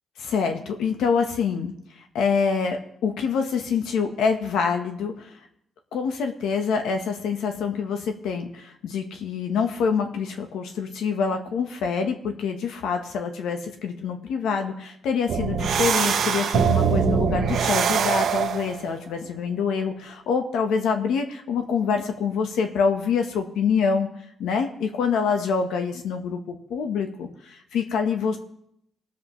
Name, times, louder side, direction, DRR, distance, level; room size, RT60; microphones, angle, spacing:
voice 1, 0.2-5.4 5.9-24.1 24.4-28.4, left 6 dB, 85° left, 5 dB, 0.9 m, -26 dB
sound 1, 15.3-18.8, right 7 dB, 65° right, 1.0 m, -22 dB
19.5 x 7.4 x 3.0 m, 0.76 s
cardioid pair, 115°, 0 cm